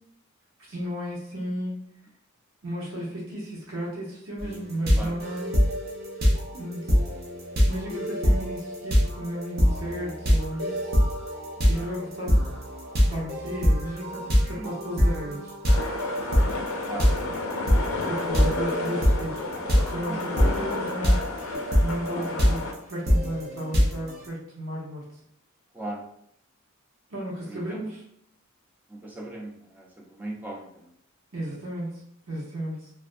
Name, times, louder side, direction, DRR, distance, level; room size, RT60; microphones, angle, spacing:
voice 1, 0.6-1.8 2.6-5.6 6.5-6.9 7.6-10.9 11.7-12.5 13.1-15.5 18.0-19.5 19.8-21.4 21.8-25.0 27.1-28.0 31.3-31.9 32.3-32.9, right 1 dB, 80° right, -5 dB, 0.8 m, -34 dB
sound 1, 4.4-24.3, equal, 50° right, 0.6 m, -24 dB
sound 2, 15.7-22.7, left 2 dB, 80° left, 0.4 m, -31 dB
voice 2, 28.9-29.9 30.2-30.7, right 1 dB, 10° right, -2 dB, 0.4 m, -37 dB
2.5 x 2.1 x 2.4 m, 0.74 s
head